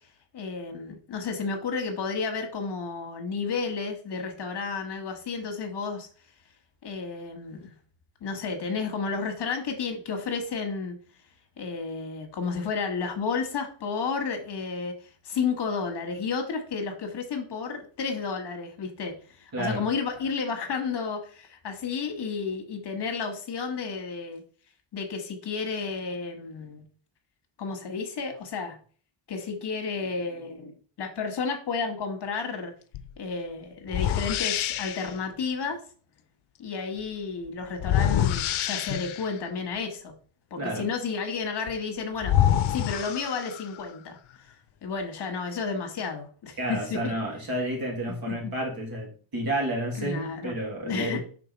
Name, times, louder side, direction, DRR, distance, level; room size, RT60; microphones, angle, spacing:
voice 1, 0.3-6.1 6.8-7.7 8.2-10.9 11.6-24.4 24.9-26.8 27.6-28.8 29.3-32.7 33.2-35.8 36.6-40.1 40.5-44.5 44.8-47.1 48.3-48.5 49.9-50.5 50.8-51.2, left 5 dB, 55° left, 1.3 m, -32 dB
voice 2, 19.5-19.8 40.6-40.9 46.6-51.2, right 1 dB, 45° right, 2.1 m, -30 dB
sound 1, 32.9-33.1 33.9-35.1 37.8-39.4 41.7-41.8 42.2-43.8, left 11 dB, 80° left, 0.6 m, -26 dB
5.9 x 3.7 x 5.1 m
wide cardioid pair, 175°, 48 cm